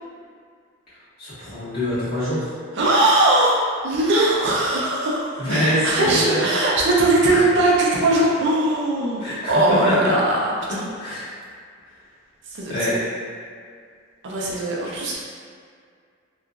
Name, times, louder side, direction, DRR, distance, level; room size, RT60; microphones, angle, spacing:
voice 1, 1.2-2.5 5.4-6.4 7.2-7.4 9.2-9.6 9.8-9.9 10.7-11.3 12.7-12.9, left 1 dB, 50° left, -14 dB, 1.4 m, -25 dB
voice 2, 2.7-10.9 12.5-13.0 14.2-15.1, right 2 dB, 55° right, -4 dB, 0.4 m, -20 dB
2.9 x 2.4 x 2.3 m, 2.1 s
head